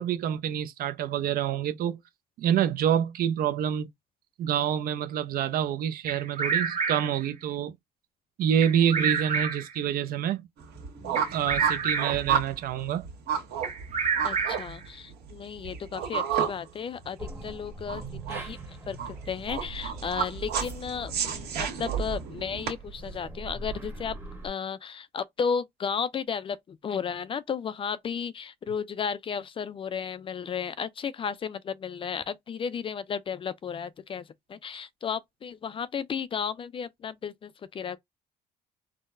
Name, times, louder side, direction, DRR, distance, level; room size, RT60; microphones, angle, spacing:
voice 1, 0.0-2.0 2.4-3.9 4.4-7.7 8.4-10.5 11.3-13.1, right 9 dB, 60° right, 0.5 m, -27 dB
Bird vocalization bird call bird song, 6.1-7.2 8.6-9.8 11.1-12.3 13.6-14.8, right 5 dB, 40° right, 1.0 m, -29 dB
sound 1, 10.6-22.7, right 8 dB, 75° right, 1.4 m, -32 dB
voice 2, 14.2-18.6 18.9-24.2 24.4-38.0, left 6 dB, 30° left, 0.3 m, -34 dB
sound 2, 17.2-24.5, right 4 dB, 15° right, 0.9 m, -40 dB
3.7 x 2.1 x 2.4 m
cardioid pair, 110°, 17 cm